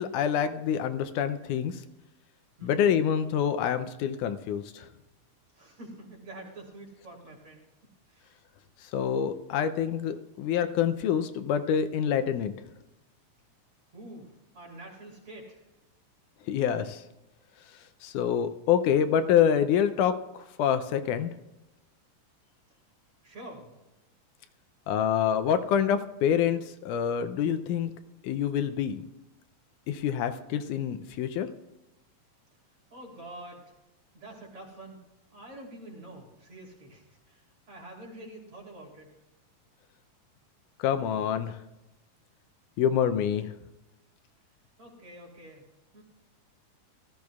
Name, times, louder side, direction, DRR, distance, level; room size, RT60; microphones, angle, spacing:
voice 1, 0.0-1.8 2.6-4.9 8.8-12.5 16.5-17.0 18.0-21.3 24.9-27.9 28.2-29.0 29.9-31.5 40.8-41.6 42.8-43.5, left 8 dB, 80° left, 9 dB, 2.1 m, -26 dB
voice 2, 2.6-2.9 5.5-7.6 8.1-8.4 13.9-15.6 23.2-23.7 32.9-33.7 34.1-35.0 35.3-39.1 44.8-45.7 45.9-46.0, right 1 dB, 45° right, -2 dB, 3.9 m, -46 dB
16.5 x 13.5 x 2.4 m, 0.97 s
omnidirectional pair, 3.7 m